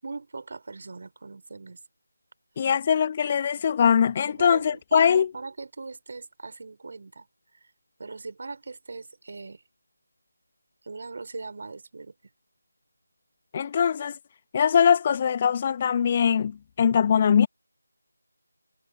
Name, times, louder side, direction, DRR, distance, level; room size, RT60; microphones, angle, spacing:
voice 1, 0.0-1.8 4.3-7.3 8.0-9.6 10.8-12.1, right 3 dB, 40° right, 5.2 m, -39 dB
voice 2, 2.6-5.3 13.5-14.2 14.5-17.5, left 7 dB, 20° left, 1.4 m, -22 dB
figure-of-eight pair, 160°, 0 cm